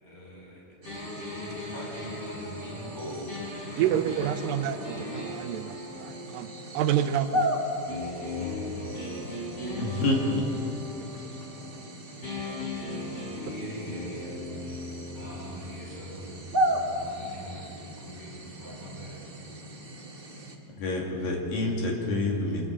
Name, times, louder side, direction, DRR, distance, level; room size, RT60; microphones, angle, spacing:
voice 1, 0.0-3.3 3.7-4.0 8.3-9.3 10.0-10.3 12.8-16.3 16.9-19.2, equal, 10° left, -6 dB, 7.3 m, -44 dB
sound 1, 0.8-20.6, equal, 50° right, 0.6 m, -36 dB
sound 2, 0.9-7.4 7.9-11.9 12.2-18.0, left 2 dB, 40° left, 8.0 m, -39 dB
voice 2, 3.8-7.5, right 10 dB, 80° right, 10 dB, 2.4 m, -29 dB
voice 3, 9.7-10.5 20.8-22.7, left 2 dB, 75° left, -1 dB, 4.5 m, -27 dB
26.5 x 21.5 x 5.0 m, 2.8 s
omnidirectional pair, 4.1 m